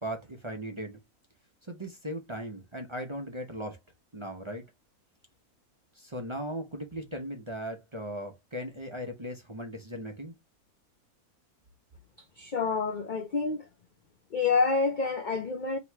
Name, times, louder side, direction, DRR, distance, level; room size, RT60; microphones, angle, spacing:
voice 1, 0.0-1.0 1.6-3.8 4.1-4.6 6.0-10.3, equal, 30° right, 0.6 m, -38 dB
voice 2, 12.4-13.7 14.3-15.8, left 4 dB, 75° left, 0.4 m, -28 dB
3.1 x 3.0 x 4.5 m
omnidirectional pair, 1.5 m